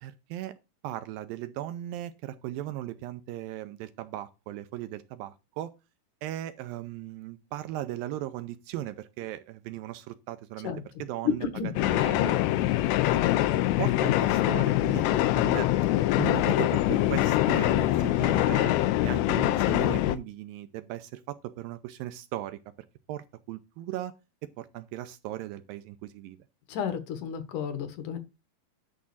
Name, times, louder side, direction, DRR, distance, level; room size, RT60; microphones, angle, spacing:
voice 1, 0.0-0.5 0.8-5.7 6.2-10.7 11.0-11.5 11.8-12.4 13.1-13.4 13.8-15.7 16.2-18.7 19.0-22.6 23.1-24.1 24.6-26.4, right 14 dB, 80° right, 2.1 m, -37 dB
voice 2, 10.6-11.7 26.7-28.2, left 7 dB, 65° left, 2.3 m, -32 dB
sound 1, 11.8-20.2, left 15 dB, 80° left, 2.4 m, -24 dB
11.0 x 3.7 x 7.1 m
omnidirectional pair, 4.7 m